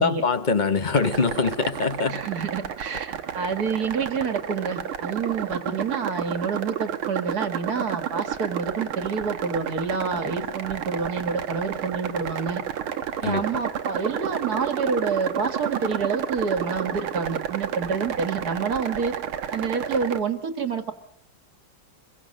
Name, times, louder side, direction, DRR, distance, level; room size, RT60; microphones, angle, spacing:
voice 1, 0.0-2.2 13.2-13.4, left 4 dB, 40° left, 12 dB, 0.7 m, -23 dB
sound 1, 0.9-20.2, right 9 dB, 85° right, 2.1 m, -31 dB
voice 2, 2.1-12.6 13.2-19.1 19.5-20.9, right 5 dB, 50° right, 9 dB, 2.1 m, -28 dB
25.5 x 22.0 x 6.5 m, 0.68 s
omnidirectional pair, 2.3 m